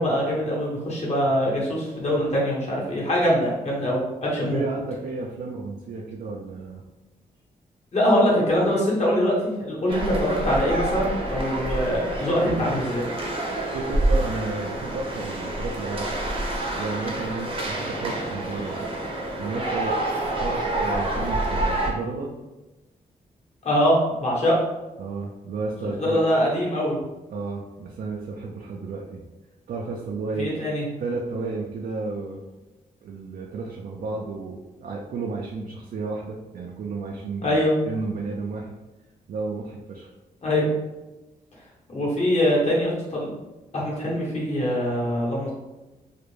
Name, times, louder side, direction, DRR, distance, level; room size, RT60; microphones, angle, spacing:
voice 1, 0.0-4.6 7.9-13.0 23.6-24.6 26.0-27.0 30.4-30.8 37.4-37.7 40.4-40.7 41.9-43.3 43.7-45.5, equal, 45° left, -4 dB, 1.1 m, -23 dB
voice 2, 4.4-6.8 12.4-12.7 13.7-16.2 16.8-18.9 19.4-20.0 20.4-22.3 25.0-26.2 27.3-29.2 29.7-30.5 31.0-32.4 33.0-38.7 39.3-40.1, right 3 dB, 70° right, -1 dB, 0.4 m, -32 dB
sound 1, 9.9-21.9, right 1 dB, 35° right, 0.7 m, -27 dB
2.4 x 2.1 x 3.1 m, 1.1 s
cardioid pair, 80°, 15 cm